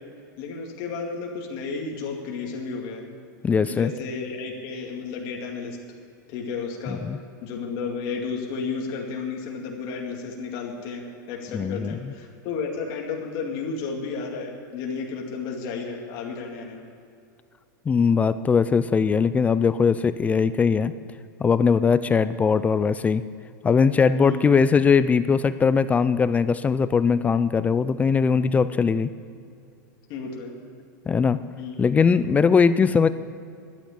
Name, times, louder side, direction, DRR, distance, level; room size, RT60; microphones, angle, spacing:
voice 1, 0.4-3.0 3.7-5.8 6.3-7.0 7.4-16.8 24.1-24.4 30.1-30.5 31.6-31.9, left 5 dB, 45° left, 0 dB, 2.3 m, -32 dB
voice 2, 3.4-3.9 6.9-7.2 11.5-12.1 17.9-20.9 21.4-23.2 23.6-29.1 31.1-31.4 31.8-33.1, left 5 dB, 15° left, 14 dB, 0.3 m, -20 dB
11.5 x 9.1 x 8.5 m, 2.4 s
supercardioid pair, 135°, 10 cm